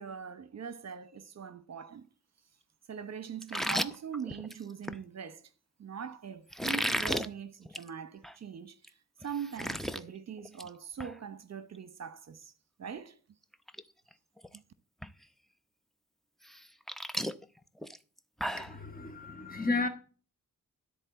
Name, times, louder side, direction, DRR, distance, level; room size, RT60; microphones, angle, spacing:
voice 1, 0.0-2.1 2.9-5.5 5.8-8.9 9.2-12.5 12.8-13.2, right 7 dB, 50° right, 1.1 m, -42 dB
sound 1, 3.4-5.0 6.5-7.3 7.7-7.9 8.2-8.3 8.8-8.9 9.2-10.0 10.4-10.7 11.0-11.1 13.0-13.1 13.5-13.8 14.1-14.6 15.0-15.1 16.5-18.8, equal, ahead, 0.6 m, -34 dB
voice 2, 18.5-19.9, left 3 dB, 25° left, 1.9 m, -33 dB
13.0 x 4.4 x 6.9 m
cardioid pair, 95°, 33 cm